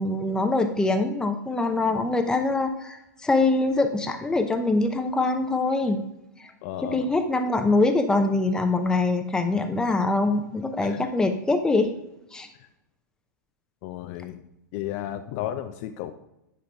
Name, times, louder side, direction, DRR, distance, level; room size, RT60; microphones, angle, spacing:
voice 1, 0.0-6.0 6.4-6.5 6.8-11.9 12.3-12.5, left 2 dB, 5° left, 6 dB, 0.6 m, -24 dB
voice 2, 6.6-7.1 10.8-11.1 13.8-14.4 14.7-16.1, left 12 dB, 45° left, 9 dB, 0.5 m, -33 dB
9.8 x 3.9 x 3.4 m, 0.88 s
hypercardioid pair, 115°, 10 cm